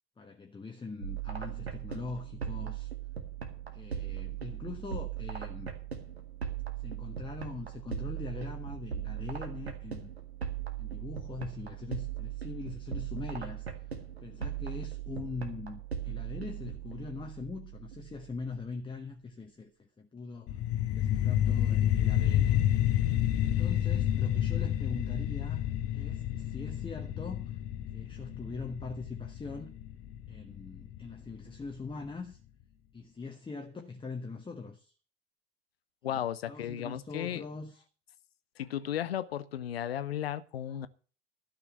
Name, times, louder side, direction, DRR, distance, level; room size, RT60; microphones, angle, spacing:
voice 1, 0.2-2.9 3.7-5.7 6.8-10.1 10.8-13.7 14.2-20.6 20.9-22.6 23.4-25.7 25.9-27.4 27.9-29.7 30.3-32.4 32.9-34.9 36.0-36.1 36.5-37.8, left 4 dB, 15° left, 1.3 m, -42 dB
sound 1, 1.0-18.6, right 9 dB, 85° right, 1.8 m, -39 dB
sound 2, 20.5-31.5, left 11 dB, 50° left, 1.2 m, -29 dB
voice 2, 36.0-37.5 38.6-40.9, left 11 dB, 75° left, 0.8 m, -35 dB
12.5 x 5.9 x 8.2 m
figure-of-eight pair, 65°, 31 cm